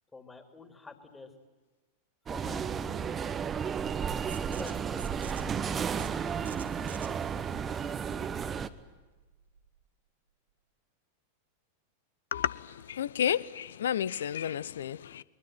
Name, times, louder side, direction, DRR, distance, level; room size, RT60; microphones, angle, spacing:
voice 1, 0.1-1.3 2.3-3.2 4.6-5.6, left 4 dB, 10° left, 3.3 m, -48 dB
sound 1, 2.3-8.7, right 7 dB, 20° right, 1.2 m, -33 dB
sound 2, 4.3-9.8, right 6 dB, 75° right, 2.6 m, -51 dB
voice 2, 12.3-15.2, left 9 dB, 65° left, 0.8 m, -31 dB
23.0 x 22.5 x 9.4 m
figure-of-eight pair, 90°, 0 cm